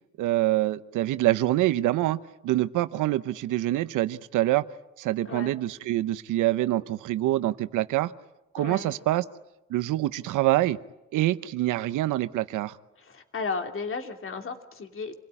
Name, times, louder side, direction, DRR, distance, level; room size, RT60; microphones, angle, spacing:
voice 1, 0.2-2.2 2.4-4.6 5.0-8.1 8.5-9.2 9.7-10.8 11.1-12.8, right 15 dB, 85° right, 14 dB, 0.9 m, -25 dB
voice 2, 8.6-9.0 13.0-15.1, left 4 dB, 45° left, 5 dB, 2.9 m, -34 dB
27.0 x 17.0 x 9.9 m, 0.95 s
cardioid pair, 90°, 30 cm